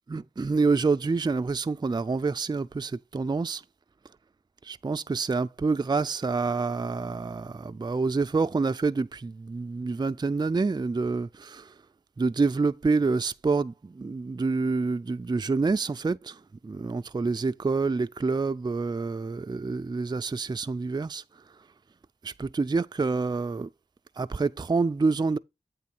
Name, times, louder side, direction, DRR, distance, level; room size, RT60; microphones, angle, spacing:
voice 1, 0.1-3.6 4.7-11.6 12.2-16.3 16.6-21.2 22.2-23.7 24.2-25.4, right 4 dB, 25° right, 0.4 m, -27 dB
8.4 x 3.1 x 5.9 m
cardioid pair, 40°, 16 cm